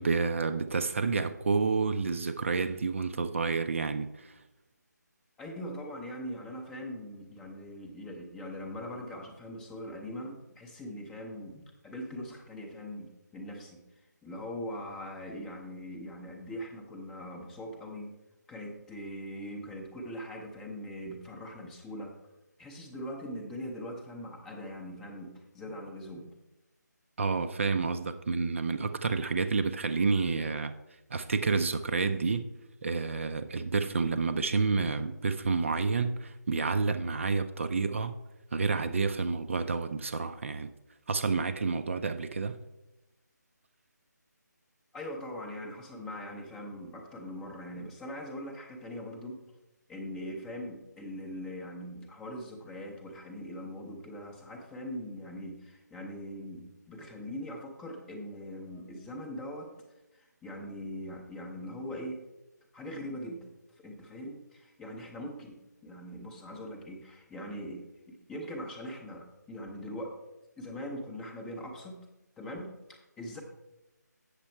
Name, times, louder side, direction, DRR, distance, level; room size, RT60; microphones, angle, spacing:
voice 1, 0.0-4.3 27.2-30.8 31.1-32.5 32.8-38.2 38.5-40.7 41.1-42.6, right 4 dB, 45° right, 0.4 m, -29 dB
voice 2, 5.4-13.8 14.2-18.1 18.5-22.2 22.6-26.3 44.9-49.4 49.9-59.7 60.1-62.2 62.7-70.2 70.6-72.1 72.4-73.4, equal, 5° left, 0.6 m, -41 dB
8.0 x 6.7 x 4.3 m
figure-of-eight pair, 155°, 10 cm